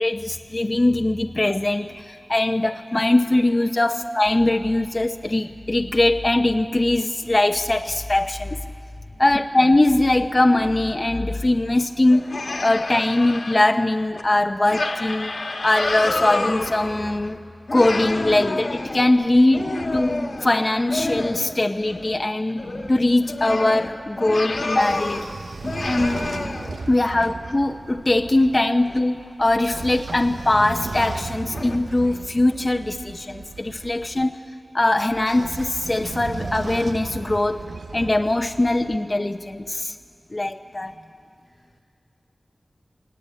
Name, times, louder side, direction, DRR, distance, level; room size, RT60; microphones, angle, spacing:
voice 1, 0.0-8.6 9.2-12.3 12.6-15.3 15.6-17.4 17.7-19.7 19.9-25.2 25.8-26.3 26.9-34.4 34.7-37.7 37.9-40.0 40.3-40.9, left 2 dB, 35° left, 5 dB, 0.8 m, -21 dB
voice 2, 9.1-9.5 40.6-41.0 41.4-41.8, right 1 dB, 70° right, -5 dB, 4.2 m, -56 dB
sound 1, 12.1-13.6 14.2-14.3 14.7-17.3 17.7-21.6 21.8-22.2 22.5-25.3 25.6-26.9 27.5-27.6 28.9-29.0 29.5-29.8 30.2-30.3 30.9-31.0 31.5-31.8, left 2 dB, 65° left, 1.4 m, -29 dB
Train / Sliding door, 24.5-28.6 29.4-34.2 35.1-39.0, right 3 dB, 85° right, 0.5 m, -36 dB
21.5 x 18.0 x 9.8 m, 2.3 s
cardioid pair, 45°, 0 cm